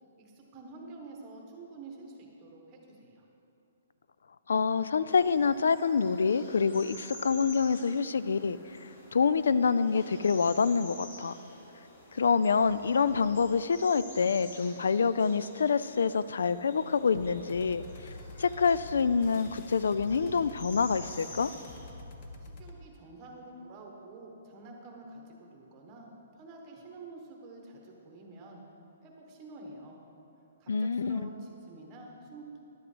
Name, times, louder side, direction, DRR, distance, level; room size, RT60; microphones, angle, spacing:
voice 1, 0.2-3.2 22.4-28.6 29.0-30.0 30.6-32.6, right 2 dB, 20° right, 0 dB, 1.2 m, -48 dB
voice 2, 4.5-11.3 12.1-18.1 18.4-21.5 30.7-31.3, left 5 dB, 80° left, 15 dB, 0.3 m, -27 dB
sound 1, 5.1-21.9, left 1 dB, 50° left, 2.2 m, -50 dB
sound 2, 17.1-22.8, left 2 dB, 30° left, 0.7 m, -47 dB
11.0 x 7.9 x 5.0 m, 2.8 s
hypercardioid pair, 175°, 0 cm